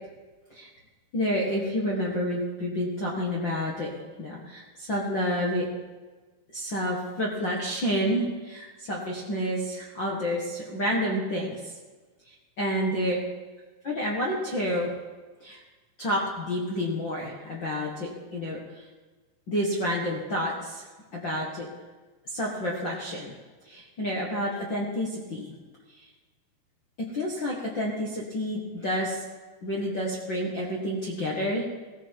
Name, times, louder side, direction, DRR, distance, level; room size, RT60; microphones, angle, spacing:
voice 1, 1.1-3.9 4.2-5.7 6.5-11.7 12.3-13.2 13.8-14.9 15.4-15.6 16.0-18.9 19.5-20.8 21.1-21.7 22.2-23.3 23.6-25.5 25.9-26.1 27.0-29.2 29.6-31.6, equal, 55° left, -3 dB, 1.3 m, -29 dB
16.5 x 15.5 x 4.7 m, 1.3 s
omnidirectional pair, 4.8 m